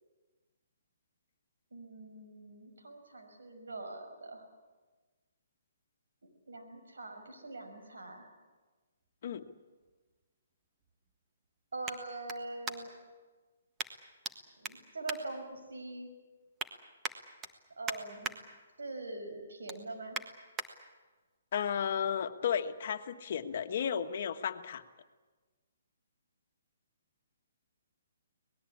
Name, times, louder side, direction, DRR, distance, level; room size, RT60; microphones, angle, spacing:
voice 1, 1.7-4.4 6.2-8.2 11.7-12.9 14.6-16.1 17.8-18.3 18.8-20.2, right 2 dB, 90° right, 5 dB, 5.9 m, -43 dB
sound 1, 9.0-13.1 13.8-14.3 14.6-15.9 16.3-16.7 17.0-18.4 18.8-19.0 19.4-20.7 21.2-21.3, right 4 dB, 15° right, 1.5 m, -42 dB
voice 2, 21.5-24.8, left 8 dB, 50° left, 8 dB, 1.5 m, -33 dB
25.0 x 19.5 x 8.6 m, 1.3 s
hypercardioid pair, 155°, 0 cm